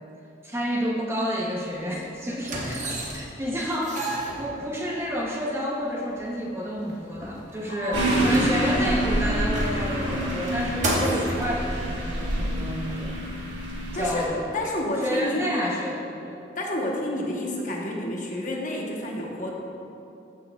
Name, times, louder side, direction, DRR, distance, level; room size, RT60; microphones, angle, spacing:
voice 1, 0.4-4.1 4.4-13.2 13.9-14.4 15.0-16.4, equal, 15° right, -3 dB, 0.7 m, -29 dB
sound 1, 1.6-1.7 2.4-3.4 3.7-5.0 5.8-5.9 6.2-6.3 6.7-8.8 9.3-11.5 12.3-12.4, right 1 dB, 40° right, 1.2 m, -32 dB
voice 2, 7.8-8.7 13.7-14.3 14.5-15.5 16.6-19.5, left 1 dB, 40° left, -2 dB, 1.0 m, -30 dB
sound 2, 7.9-14.2, right 1 dB, 65° right, 1.5 m, -27 dB
14.0 x 6.3 x 2.3 m, 2.7 s
head